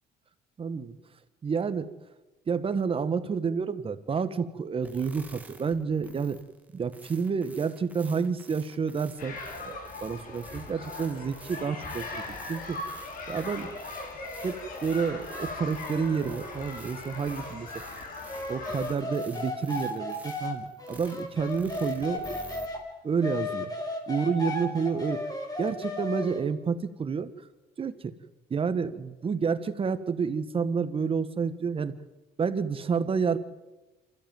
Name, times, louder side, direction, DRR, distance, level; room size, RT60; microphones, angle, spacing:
voice 1, 0.6-0.9 1.4-1.9 2.5-6.4 6.7-12.8 13.3-13.7 14.4-17.8 18.5-22.4 23.0-23.7 24.1-25.2 25.6-27.3 27.8-28.1 28.5-31.9 32.4-33.4, right 5 dB, 35° right, 12 dB, 1.5 m, -29 dB
sound 1, 4.8-22.7, right 2 dB, 10° right, 2.6 m, -51 dB
sound 2, 9.2-19.0, left 2 dB, 55° left, 5.6 m, -39 dB
sound 3, 18.3-22.8 23.2-26.4, left 2 dB, 20° left, 4.6 m, -34 dB
27.0 x 15.0 x 9.3 m, 1.2 s
cardioid pair, 110°, 17 cm